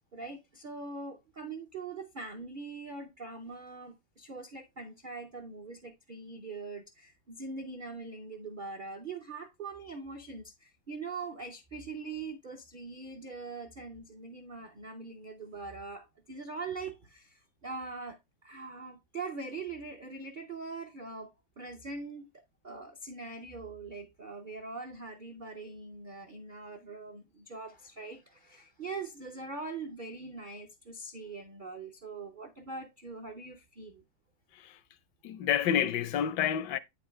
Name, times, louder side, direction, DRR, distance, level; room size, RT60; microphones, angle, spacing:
voice 1, 0.1-22.2 22.6-34.0, right 4 dB, 55° right, 0.5 m, -42 dB
voice 2, 35.2-36.8, left 9 dB, 75° left, 1.2 m, -29 dB
9.1 x 4.7 x 3.1 m
omnidirectional pair, 2.0 m